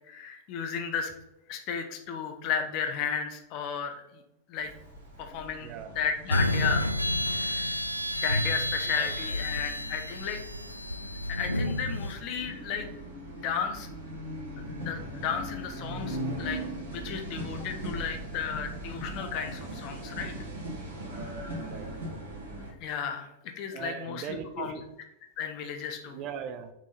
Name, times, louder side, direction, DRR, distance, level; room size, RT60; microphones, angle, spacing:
voice 1, 0.1-1.1 1.5-4.2 4.5-4.7 5.2-6.9 7.3-7.8 8.1-10.4 11.0-12.9 13.4-13.9 14.7-16.6 16.9-20.3 22.8-24.8 25.4-26.2, left 6 dB, 45° left, 5 dB, 0.9 m, -34 dB
sound 1, 4.6-22.7, right 1 dB, 70° right, 1.7 m, -40 dB
voice 2, 5.6-6.0 8.9-9.1 21.6-22.2 23.7-24.9 26.0-26.7, right 8 dB, 35° right, 9 dB, 0.6 m, -40 dB
sound 2, 6.3-12.1, left 1 dB, 85° left, 0.3 m, -30 dB
6.2 x 3.7 x 4.1 m, 0.88 s
figure-of-eight pair, 90°, 0 cm